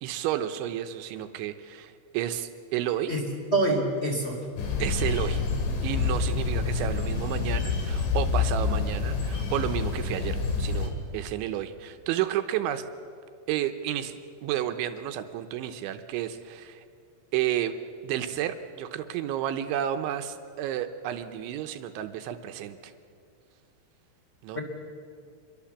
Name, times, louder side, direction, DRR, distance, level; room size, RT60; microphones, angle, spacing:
voice 1, 0.0-3.1 4.8-5.4 5.8-12.9 13.5-16.8 17.3-17.8 18.0-22.9 24.4-24.6, right 11 dB, 80° right, 8 dB, 3.1 m, -31 dB
voice 2, 3.5-4.4 24.5-24.6, right 2 dB, 15° left, 0 dB, 3.1 m, -25 dB
sound 1, 4.6-10.9, left 5 dB, 75° left, 5.0 m, -27 dB
27.0 x 22.5 x 7.3 m, 2.3 s
omnidirectional pair, 5.7 m